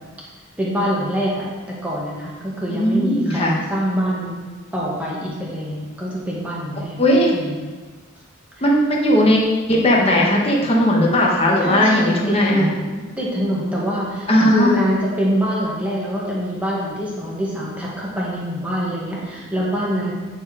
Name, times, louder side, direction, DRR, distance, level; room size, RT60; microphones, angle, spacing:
voice 1, 0.6-1.5 1.8-4.4 4.7-7.0 7.3-7.6 8.6-8.7 11.6-20.1, equal, 5° right, -6 dB, 1.7 m, -24 dB
voice 2, 2.8-3.5 7.0-7.3 8.6-9.4 9.7-12.7 14.3-14.7, left 1 dB, 25° left, -2 dB, 1.2 m, -17 dB
9.4 x 4.5 x 5.0 m, 1.4 s
head